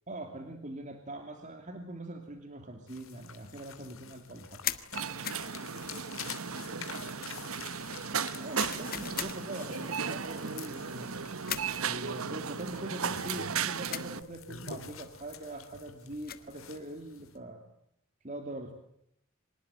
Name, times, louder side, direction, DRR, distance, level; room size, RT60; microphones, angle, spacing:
voice 1, 0.1-4.6 8.4-11.2 11.8-17.6 18.2-18.7, right 1 dB, 35° right, 5 dB, 2.9 m, -42 dB
sound 1, 2.9-17.4, left 7 dB, 70° left, 3.0 m, -48 dB
sound 2, 4.6-4.9 5.2-5.5 8.6-9.4 11.5-11.8 13.9-14.1 16.0-16.5, left 11 dB, 45° left, 1.6 m, -36 dB
sound 3, 4.9-14.2, right 6 dB, 80° right, 1.2 m, -36 dB
voice 2, 5.0-6.2 6.5-7.6, right 1 dB, 60° right, 8 dB, 6.2 m, -54 dB
26.0 x 20.0 x 9.2 m, 0.75 s
head